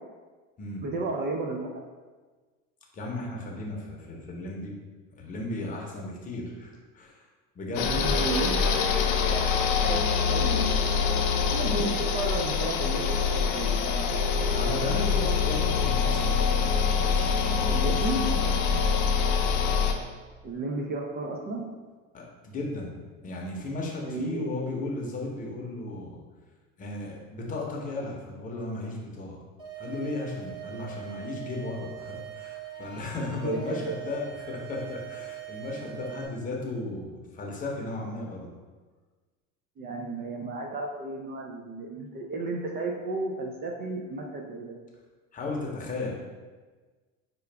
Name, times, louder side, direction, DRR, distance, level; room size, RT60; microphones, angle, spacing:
voice 1, 0.8-1.8 7.8-8.9 9.3-9.5 9.8-11.0 11.5-14.6 17.7-18.3 20.4-21.7 24.0-24.6 33.2-34.0 39.8-44.8 46.1-46.2, right 2 dB, 35° right, 1 dB, 0.4 m, -33 dB
voice 2, 2.9-4.7 5.1-7.2 7.5-8.2 14.5-18.9 22.1-22.9 23.2-26.2 26.8-29.4 29.8-38.5 45.3-46.1, left 2 dB, 25° left, -2 dB, 0.8 m, -35 dB
sound 1, 7.8-19.9, left 6 dB, 70° left, 0.6 m, -25 dB
sound 2, 29.6-36.2, right 11 dB, 15° right, 0.9 m, -42 dB
4.8 x 2.3 x 3.3 m, 1.4 s
cardioid pair, 130°, 30 cm